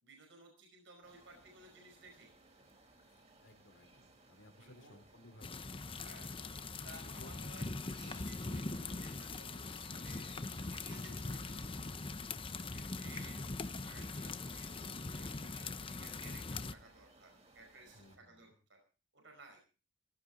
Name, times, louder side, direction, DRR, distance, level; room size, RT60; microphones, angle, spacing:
voice 1, 0.0-2.3 4.6-5.0 6.0-6.4 6.8-11.8 12.7-13.4 13.8-18.8 19.1-19.6, right 3 dB, 70° right, 3 dB, 5.1 m, -58 dB
sound 1, 1.0-18.2, right 2 dB, 35° right, 4.2 m, -64 dB
voice 2, 3.1-5.9 7.0-7.5 12.4-12.9 17.9-18.5, left 1 dB, 75° left, 7 dB, 3.1 m, -60 dB
sound 2, 5.4-16.7, left 3 dB, 25° left, 0.8 m, -42 dB
17.0 x 16.5 x 3.9 m, 0.36 s
head